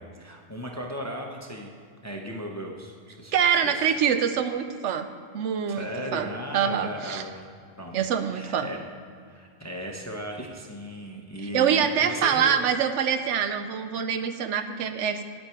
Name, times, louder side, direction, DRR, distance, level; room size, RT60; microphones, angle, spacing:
voice 1, 0.0-1.7 2.0-3.3 3.6-3.9 5.7-7.5 7.8-8.0 8.3-8.8 9.3-12.5, equal, 15° left, 1 dB, 0.6 m, -36 dB
voice 2, 3.3-5.1 5.3-6.3 6.5-7.2 7.9-8.7 11.5-15.2, right 7 dB, 75° right, 9 dB, 0.9 m, -25 dB
9.6 x 8.3 x 4.4 m, 2.3 s
omnidirectional pair, 1.3 m